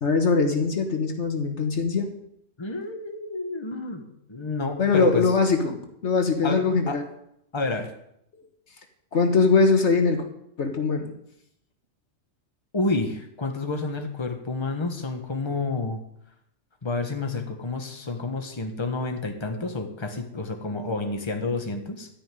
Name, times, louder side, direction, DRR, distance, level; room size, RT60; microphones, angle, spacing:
voice 1, 0.0-2.1 4.8-7.0 9.1-10.2 10.6-11.1, left 4 dB, 65° left, 5 dB, 1.5 m, -22 dB
voice 2, 2.6-5.3 6.4-7.0 7.5-7.9 12.7-16.0 16.8-22.1, left 3 dB, 20° left, 4 dB, 1.4 m, -29 dB
13.5 x 5.5 x 9.3 m, 0.75 s
omnidirectional pair, 1.3 m